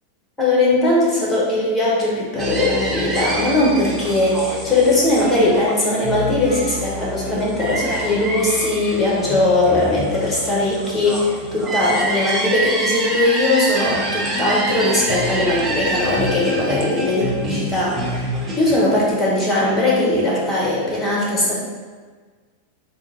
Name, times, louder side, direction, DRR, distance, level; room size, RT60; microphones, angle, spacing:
voice 1, 0.4-18.2 18.6-21.6, left 2 dB, 10° left, -5 dB, 1.3 m, -19 dB
sound 1, 2.4-18.8, right 1 dB, 20° right, 0.7 m, -26 dB
3.6 x 2.9 x 3.8 m, 1.5 s
figure-of-eight pair, 90°, 0 cm